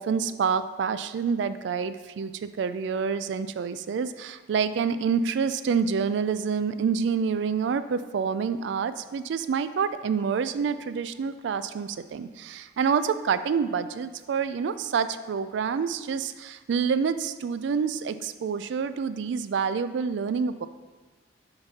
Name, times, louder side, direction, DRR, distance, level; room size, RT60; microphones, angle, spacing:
voice 1, 0.0-20.7, right 6 dB, 70° right, 12 dB, 0.3 m, -27 dB
6.9 x 4.0 x 4.1 m, 1.3 s
head